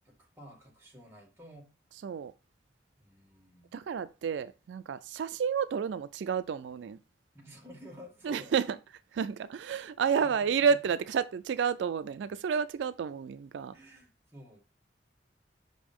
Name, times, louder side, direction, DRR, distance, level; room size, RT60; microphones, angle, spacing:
voice 1, 0.0-1.7 3.0-3.8 7.3-8.5 10.2-10.8 13.7-14.6, equal, 15° right, 1.7 m, -52 dB
voice 2, 3.7-7.0 8.2-8.8 9.1-13.7, right 6 dB, 80° right, 0.3 m, -30 dB
5.8 x 5.2 x 3.6 m
head